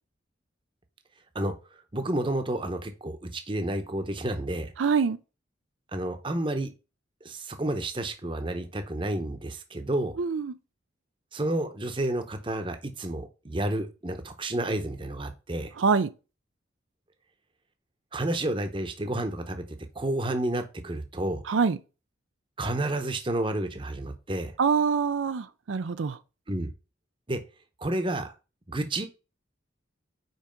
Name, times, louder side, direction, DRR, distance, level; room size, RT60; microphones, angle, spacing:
voice 1, 1.9-4.7 5.9-6.7 7.2-10.2 11.3-15.7 18.1-19.6 19.9-21.4 22.6-24.5 26.5-26.7 27.3-27.4 27.8-28.3 28.7-29.1, right 1 dB, 25° right, 0.8 m, -30 dB
voice 2, 4.8-5.2 10.2-10.5 15.8-16.1 21.5-21.8 24.6-26.2, right 5 dB, 85° right, 0.5 m, -25 dB
5.3 x 4.8 x 5.1 m
head